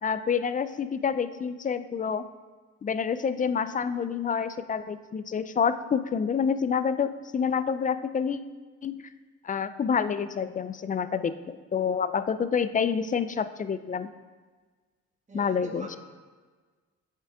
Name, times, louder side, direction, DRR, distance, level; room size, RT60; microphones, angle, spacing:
voice 1, 0.0-2.3 2.8-8.4 8.8-8.9 9.4-14.1 15.3-16.0, left 6 dB, 25° left, 13 dB, 0.4 m, -28 dB
voice 2, 15.3-16.0, right 2 dB, 25° right, 0 dB, 1.7 m, -42 dB
8.4 x 7.4 x 3.5 m, 1.4 s
cardioid pair, 90°, 30 cm